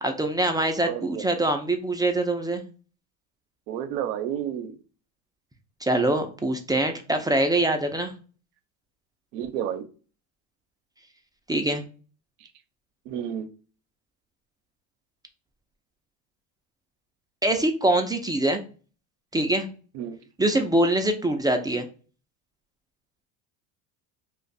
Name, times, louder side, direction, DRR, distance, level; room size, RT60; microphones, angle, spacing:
voice 1, 0.0-2.6 5.8-8.1 11.5-11.8 17.4-18.6 19.3-19.7 20.4-21.9, right 1 dB, 10° right, 5 dB, 0.4 m, -24 dB
voice 2, 0.8-1.2 3.7-4.7 9.3-9.8 13.1-13.5 19.9-20.2, right 10 dB, 85° right, 8 dB, 0.7 m, -30 dB
2.5 x 2.2 x 3.9 m, 0.37 s
supercardioid pair, 95°, 44 cm